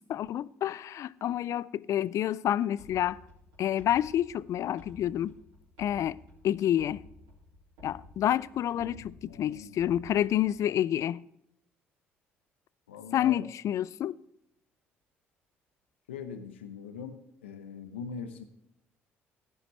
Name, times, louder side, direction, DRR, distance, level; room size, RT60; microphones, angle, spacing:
voice 1, 0.1-3.2 3.6-5.4 5.8-6.2 6.4-7.0 7.8-11.2 13.1-14.2, left 11 dB, 55° left, 0.4 m, -28 dB
sound 1, 2.8-10.6, left 2 dB, 75° right, 3.8 m, -54 dB
voice 2, 8.7-9.8 12.9-13.4 16.1-18.4, left 6 dB, 90° left, 0.9 m, -42 dB
15.0 x 9.9 x 3.2 m
hypercardioid pair, 55°, 6 cm